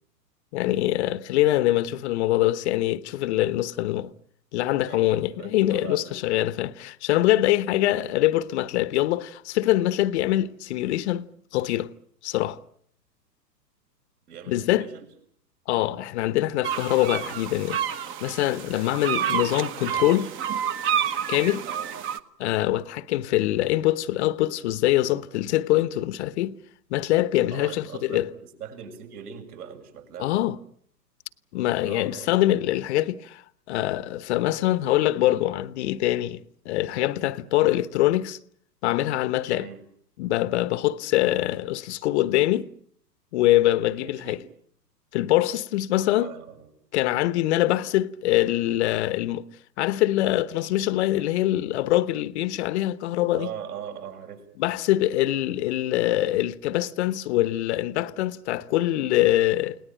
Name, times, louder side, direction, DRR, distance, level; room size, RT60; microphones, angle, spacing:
voice 1, 0.5-4.1 4.5-11.9 12.2-12.6 14.5-14.9 15.7-20.3 21.3-21.6 22.4-26.6 26.9-28.3 30.2-30.6 31.5-38.4 38.8-39.7 40.2-42.7 43.3-44.4 45.1-46.3 46.9-49.5 49.8-53.5 54.6-59.8, left 15 dB, 40° left, 1.0 m, -24 dB
voice 2, 4.9-6.4 8.0-8.2 14.3-15.1 19.2-19.4 21.7-22.0 27.5-30.3 31.8-32.6 39.4-39.8 44.0-44.4 46.1-46.7 53.3-54.4, right 8 dB, 65° right, 7.0 m, -41 dB
sound 1, 16.6-22.2, right 9 dB, 25° right, 1.1 m, -29 dB
29.5 x 19.0 x 9.1 m
hypercardioid pair, 135°, 50 cm